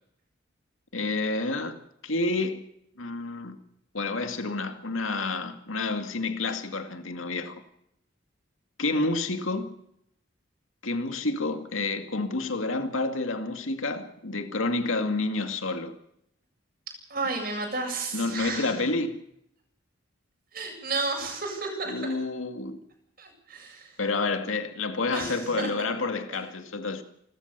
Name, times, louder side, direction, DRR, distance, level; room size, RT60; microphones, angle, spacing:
voice 1, 0.9-1.8 2.0-2.6 3.0-3.6 3.9-7.5 8.8-9.7 10.8-15.9 18.1-19.2 21.9-22.8 24.0-27.0, left 3 dB, 85° left, 2.3 m, -29 dB
voice 2, 17.1-18.7 20.5-22.0 23.2-23.9 25.1-25.7 26.3-26.4, right 3 dB, 45° right, 7.8 m, -32 dB
29.0 x 14.0 x 6.9 m
head